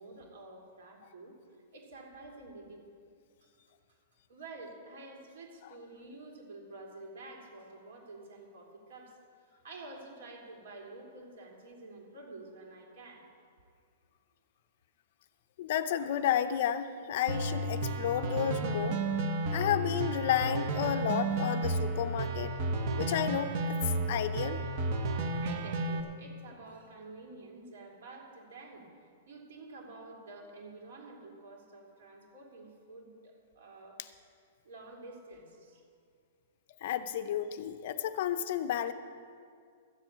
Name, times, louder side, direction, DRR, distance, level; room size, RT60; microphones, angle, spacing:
voice 1, 0.0-1.3 1.7-2.8 3.4-3.5 3.9-4.0 4.3-9.1 9.4-13.2 25.4-28.9 29.3-34.0 34.6-35.8, right 2 dB, 60° right, 0 dB, 3.3 m, -49 dB
voice 2, 15.6-19.0 19.5-22.5 22.9-23.8 24.1-24.6 36.8-38.9, left 10 dB, 45° left, 11 dB, 0.5 m, -31 dB
sound 1, 17.3-26.0, right 2 dB, 35° right, 0.8 m, -32 dB
13.5 x 7.5 x 8.8 m, 2.2 s
hypercardioid pair, 180°, 0 cm